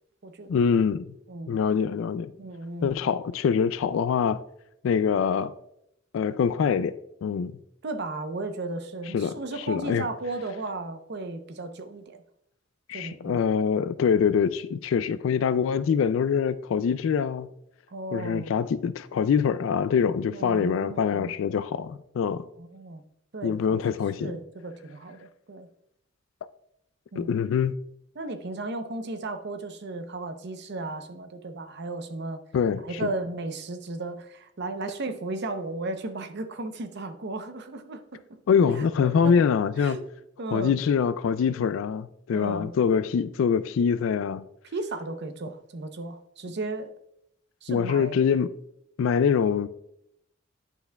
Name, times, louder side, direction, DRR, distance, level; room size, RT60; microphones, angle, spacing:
voice 1, 0.5-1.1 1.5-2.3 2.8-4.4 4.8-5.5 6.1-7.5 9.1-9.4 9.7-10.1 12.9-17.5 18.1-22.4 23.4-24.3 27.2-27.7 32.5-33.1 38.5-40.0 40.5-44.5 47.7-48.5 49.0-49.7, left 6 dB, 75° left, 0.3 m, -24 dB
voice 2, 1.3-1.6 2.4-3.0 7.8-12.2 12.9-13.4 17.9-18.6 20.3-21.3 22.6-23.0 23.3-23.8 24.2-25.7 27.1-27.4 28.2-32.4 32.7-38.4 38.8-39.4 39.8-40.0 40.4-40.8 42.3-42.7 44.7-46.9 47.6-48.1, right 2 dB, 60° right, 0.7 m, -35 dB
10.0 x 5.8 x 2.2 m
head